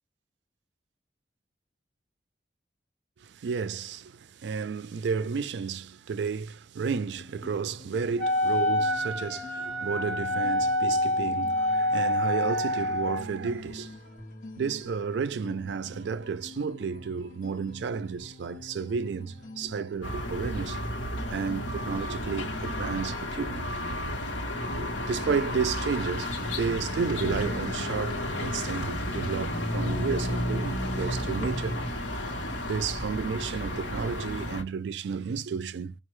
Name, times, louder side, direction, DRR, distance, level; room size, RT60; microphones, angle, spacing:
voice 1, 3.2-14.0 14.6-20.8 21.3-23.7 24.8-31.8 32.7-36.0, right 5 dB, 70° right, 0.3 m, -32 dB
sound 1, 7.2-23.2, left 2 dB, 45° left, 0.9 m, -46 dB
Wind instrument woodwind instrument, 8.2-13.2, left 1 dB, 5° left, 0.9 m, -27 dB
sound 2, 20.0-34.6, left 1 dB, 80° left, 1.0 m, -32 dB
4.5 x 2.3 x 3.0 m
head